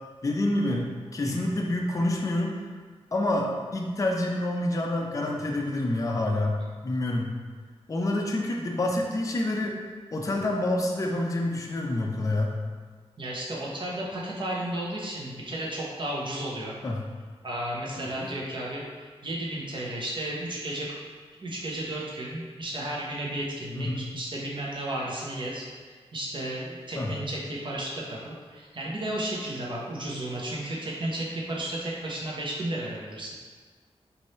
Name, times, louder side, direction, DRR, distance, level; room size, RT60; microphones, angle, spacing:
voice 1, 0.2-0.9 1.1-2.6 3.1-7.3 7.9-9.8 10.1-12.5 16.8-17.0 18.0-18.3 23.7-24.0 27.0-27.1, left 1 dB, 30° left, 0 dB, 0.5 m, -27 dB
voice 2, 13.2-16.8 17.4-20.9 21.3-25.7 26.1-33.3, right 1 dB, 45° right, -4 dB, 0.9 m, -33 dB
3.3 x 2.6 x 4.2 m, 1.5 s
wide cardioid pair, 95°, 11 cm